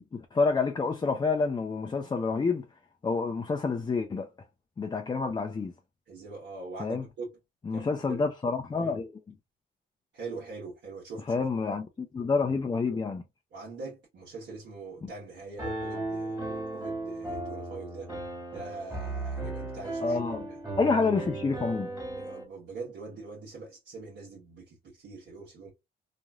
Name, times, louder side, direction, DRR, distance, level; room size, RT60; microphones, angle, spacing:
voice 1, 0.0-2.7 3.0-4.3 4.8-5.7 6.8-7.0 7.7-9.1 11.3-13.2 15.0-15.1 20.0-20.5 20.8-21.9, left 4 dB, 20° left, 0.4 m, -28 dB
voice 2, 6.1-7.3 7.7-8.2 8.8-9.0 10.1-11.5 13.5-18.1 18.5-20.6 22.1-25.7, right 3 dB, 70° right, 1.2 m, -43 dB
Piano, 15.6-22.4, right 2 dB, 15° right, 1.7 m, -36 dB
3.0 x 2.5 x 2.3 m
cardioid pair, 90°, 20 cm